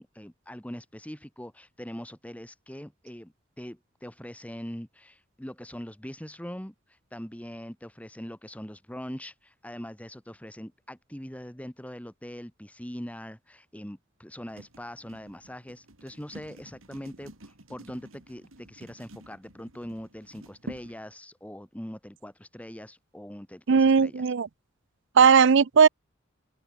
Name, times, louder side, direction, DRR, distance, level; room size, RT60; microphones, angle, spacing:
voice 1, 0.0-24.3, equal, 5° left, 1.7 m, -42 dB
sound 1, 14.5-21.0, right 1 dB, 90° right, 4.2 m, -48 dB
voice 2, 23.7-24.5 25.2-25.9, right 6 dB, 65° right, 0.5 m, -18 dB
open air
head